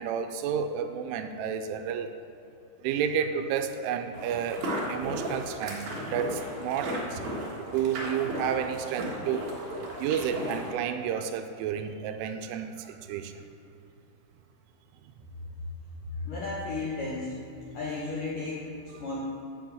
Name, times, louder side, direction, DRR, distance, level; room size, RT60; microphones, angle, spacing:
voice 1, 0.0-2.1 2.8-4.6 4.9-7.2 7.7-9.5 9.8-13.3, right 8 dB, 85° right, 7 dB, 3.0 m, -31 dB
sound 1, 4.1-10.7, equal, 60° right, 2.0 m, -35 dB
voice 2, 16.0-17.4 17.7-19.2, left 3 dB, 70° left, -6 dB, 2.0 m, -34 dB
8.2 x 7.0 x 7.8 m, 2.7 s
omnidirectional pair, 5.7 m